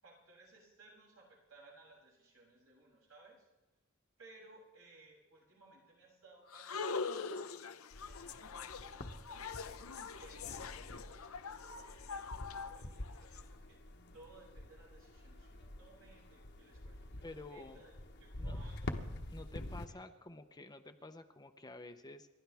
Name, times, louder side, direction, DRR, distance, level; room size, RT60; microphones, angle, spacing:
voice 1, 0.0-3.5 4.2-7.2 7.4-7.8 8.0-9.7 10.1-19.0 19.9-20.0, right 2 dB, 75° right, -4 dB, 7.4 m, -61 dB
sound 1, 6.5-13.4, left 5 dB, 80° left, 0.8 m, -43 dB
sound 2, 7.9-19.9, left 1 dB, 55° left, 1.2 m, -47 dB
voice 2, 17.2-17.8 18.4-18.6 19.3-22.3, left 2 dB, 20° left, 7 dB, 0.8 m, -50 dB
29.5 x 12.5 x 3.5 m, 1.1 s
head